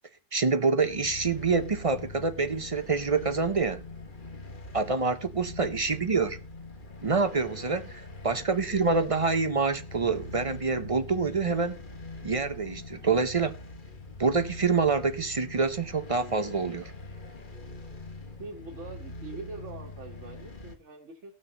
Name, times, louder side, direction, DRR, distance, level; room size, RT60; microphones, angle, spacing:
voice 1, 0.3-3.8 4.7-6.4 7.0-7.8 8.2-11.8 12.2-13.5 14.2-16.9, right 4 dB, 35° right, 0.6 m, -26 dB
sound 1, 0.8-20.7, left 2 dB, 45° left, 1.4 m, -43 dB
voice 2, 4.7-5.2 7.5-7.9 18.4-21.3, right 3 dB, 90° right, 1.6 m, -44 dB
19.0 x 6.3 x 2.8 m
omnidirectional pair, 1.2 m